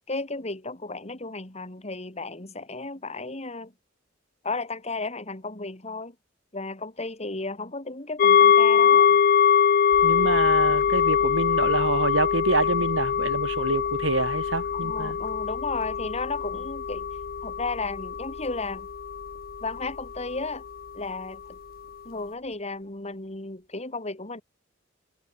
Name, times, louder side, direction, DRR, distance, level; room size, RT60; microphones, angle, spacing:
voice 1, 0.1-3.7 4.4-6.2 6.5-9.2 14.7-17.1 17.4-18.9 19.6-20.6 20.9-21.6 22.1-24.4, left 3 dB, 35° left, 3.3 m, -34 dB
sound 1, 8.2-19.9 20.2-20.3, left 7 dB, 50° left, 0.4 m, -23 dB
sound 2, 9.9-22.5, equal, 25° right, 6.7 m, -44 dB
voice 2, 10.0-15.2, right 3 dB, 80° right, 3.0 m, -26 dB
head